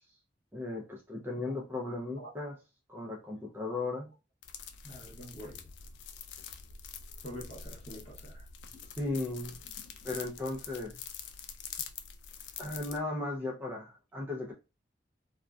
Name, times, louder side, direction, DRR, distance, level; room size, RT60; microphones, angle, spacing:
voice 1, 0.5-2.5 2.9-4.1 9.0-9.6 10.0-11.0 12.6-14.5, left 2 dB, 10° right, 0.4 m, -36 dB
sound 1, 4.4-13.0, left 7 dB, 70° left, 0.3 m, -45 dB
voice 2, 4.8-5.7 7.2-8.5, equal, 35° left, 0.7 m, -46 dB
2.5 x 2.2 x 2.2 m
head